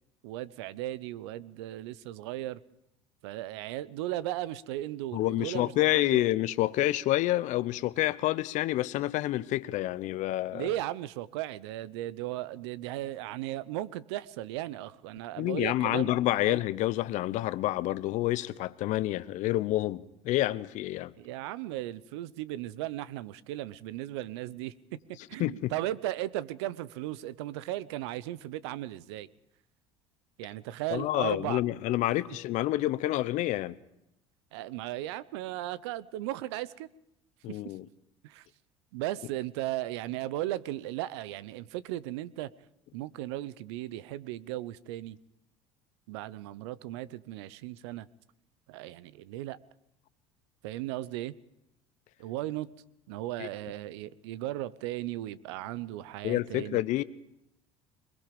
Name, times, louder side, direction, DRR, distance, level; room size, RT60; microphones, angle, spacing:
voice 1, 0.2-2.6 3.2-5.7 6.0-6.3 10.5-16.1 16.5-16.6 21.2-29.3 30.4-31.6 34.5-36.9 37.5-37.6 38.2-38.5 38.9-42.5 42.9-45.2 46.1-48.1 48.7-49.6 50.6-51.4 52.2-52.7 53.1-56.8, right 15 dB, 80° right, 0.8 m, -36 dB
voice 2, 5.1-10.7 15.4-21.1 25.4-25.7 30.9-33.8 37.4-37.9 53.4-53.5 56.2-57.0, left 15 dB, 60° left, 0.8 m, -28 dB
23.0 x 21.5 x 5.2 m
hypercardioid pair, 70°, 14 cm